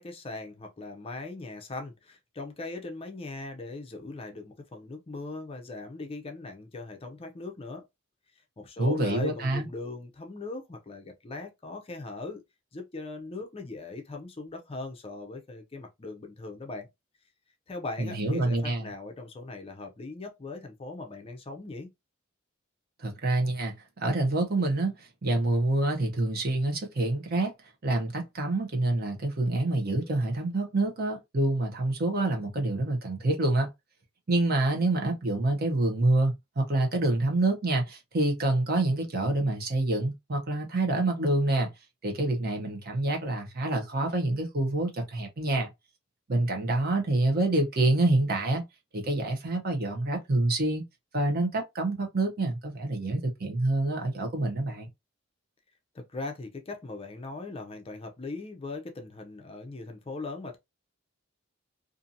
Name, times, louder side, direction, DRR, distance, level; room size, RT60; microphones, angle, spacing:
voice 1, 0.0-7.8 8.6-12.4 12.7-16.9 17.7-21.9 55.9-60.6, left 3 dB, 25° left, 0.4 m, -39 dB
voice 2, 8.8-9.7 18.0-18.9 23.0-23.7 24.0-27.5 27.8-33.7 34.3-41.7 42.0-45.7 46.3-48.6 48.9-50.8 51.1-54.9, right 2 dB, 45° right, 0.7 m, -27 dB
2.6 x 2.5 x 2.5 m
head